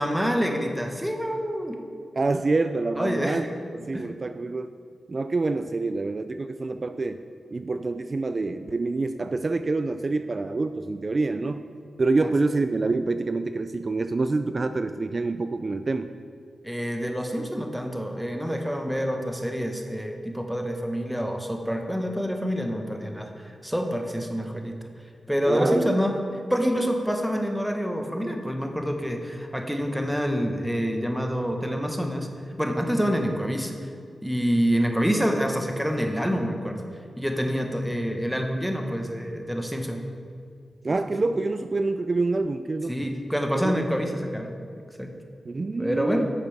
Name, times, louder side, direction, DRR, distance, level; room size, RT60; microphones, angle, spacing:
voice 1, 0.0-1.8 3.0-3.4 3.9-4.1 12.2-12.3 16.6-24.8 25.3-26.2 26.5-32.3 32.6-33.9 34.2-36.8 37.2-40.0 42.9-44.5 45.0-45.1 45.8-46.3, equal, ahead, 3 dB, 1.2 m, -27 dB
voice 2, 2.2-3.5 3.7-4.7 5.1-7.2 7.5-11.7 12.0-16.1 25.5-25.9 40.8-43.1 43.6-43.8 44.1-44.2 45.5-46.3, right 3 dB, 45° right, 9 dB, 0.3 m, -26 dB
10.0 x 6.5 x 3.5 m, 2.3 s
supercardioid pair, 40°, 0 cm